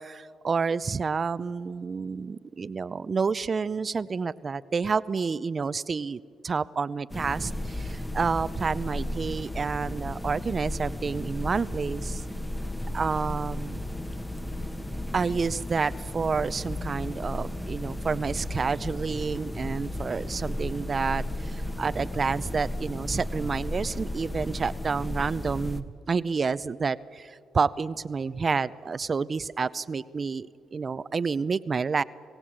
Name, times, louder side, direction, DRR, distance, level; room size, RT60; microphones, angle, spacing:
voice 1, 0.0-12.2 12.9-13.8 15.1-32.0, right 5 dB, 45° right, 17 dB, 0.6 m, -29 dB
sound 1, 7.1-25.8, left 1 dB, 15° left, 1.4 m, -34 dB
26.0 x 16.5 x 8.9 m, 2.3 s
supercardioid pair, 60°, 0 cm